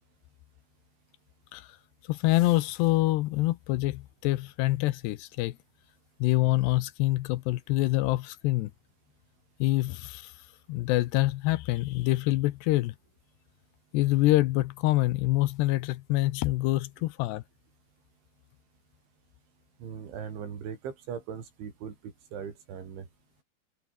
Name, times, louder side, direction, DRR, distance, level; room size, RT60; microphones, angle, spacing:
voice 1, 2.1-5.6 6.2-8.7 9.6-10.3 10.7-12.9 13.9-17.4, left 18 dB, 80° left, 2.8 m, -26 dB
voice 2, 19.8-23.1, right 7 dB, 90° right, 6.7 m, -39 dB
omnidirectional pair, 5.2 m